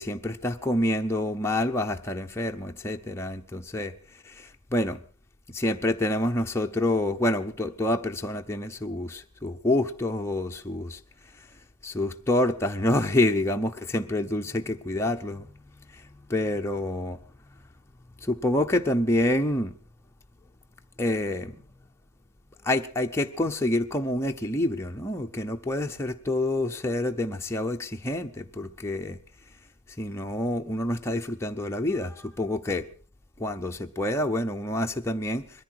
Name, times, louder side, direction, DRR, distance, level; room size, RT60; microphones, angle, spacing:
voice 1, 0.0-3.9 4.3-5.0 5.5-11.0 11.8-15.5 16.3-17.2 18.2-19.7 21.0-21.6 22.6-29.2 30.0-32.9 33.4-35.4, left 1 dB, 10° left, 0.8 m, -27 dB
21.5 x 14.5 x 4.7 m
head